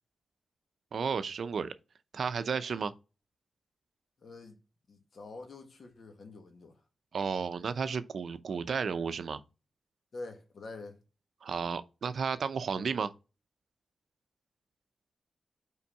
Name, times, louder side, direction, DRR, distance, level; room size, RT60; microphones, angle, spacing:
voice 1, 0.9-1.7 2.1-2.9 7.1-9.4 11.4-13.1, right 6 dB, 70° right, 0.6 m, -33 dB
voice 2, 4.2-4.5 4.9-6.7 10.1-11.0, left 3 dB, 60° left, 1.8 m, -46 dB
5.7 x 4.6 x 5.5 m
cardioid pair, 80°, 0 cm